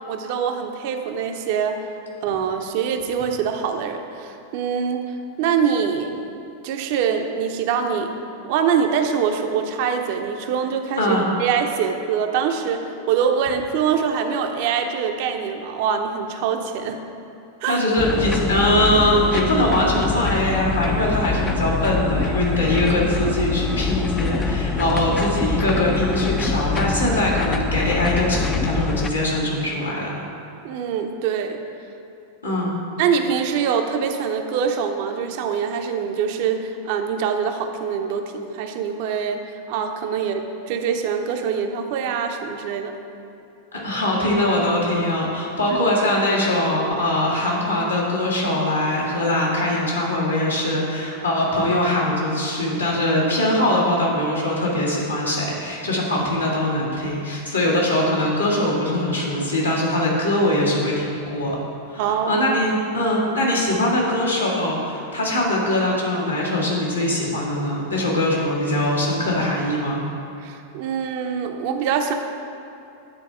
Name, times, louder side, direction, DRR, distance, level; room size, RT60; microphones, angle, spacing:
voice 1, 0.0-1.8 2.2-6.4 6.6-8.1 8.4-17.0 17.6-17.8 30.6-31.6 33.0-43.0 45.7-45.8 62.0-62.5 70.4-72.1, right 7 dB, 50° right, 5 dB, 0.6 m, -24 dB
voice 2, 17.7-30.2 32.4-32.7 43.7-61.6 61.9-70.0, left 1 dB, 85° left, -7 dB, 1.9 m, -22 dB
sound 1, 18.0-29.1, left 4 dB, 20° left, 0.4 m, -25 dB
9.7 x 4.1 x 5.6 m, 2.8 s
figure-of-eight pair, 90°, 0 cm